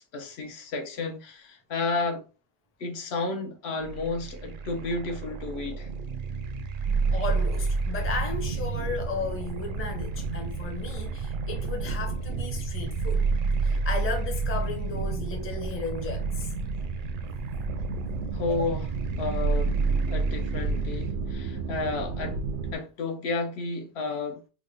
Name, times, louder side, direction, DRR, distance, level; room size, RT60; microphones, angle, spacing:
voice 1, 0.0-2.2 2.8-5.9 18.3-18.9 19.2-19.8 20.1-22.4 22.7-24.4, left 3 dB, 70° left, 0.9 m, -32 dB
sound 1, 3.8-21.1, right 4 dB, 60° right, 0.6 m, -31 dB
sound 2, 6.8-22.7, right 4 dB, 90° right, 0.9 m, -33 dB
voice 2, 7.1-13.2 13.6-16.5 18.5-18.7, left 3 dB, 15° left, 0.5 m, -34 dB
3.5 x 2.1 x 3.4 m
omnidirectional pair, 1.2 m